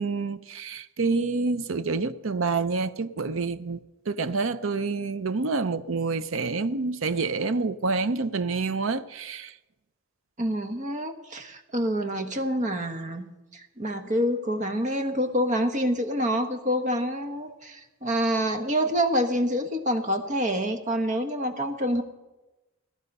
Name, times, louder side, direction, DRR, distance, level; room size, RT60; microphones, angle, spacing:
voice 1, 0.0-3.8 4.1-9.5, right 4 dB, 65° right, 0.6 m, -27 dB
voice 2, 10.4-22.0, equal, 35° right, 1.2 m, -27 dB
16.5 x 11.0 x 5.4 m
head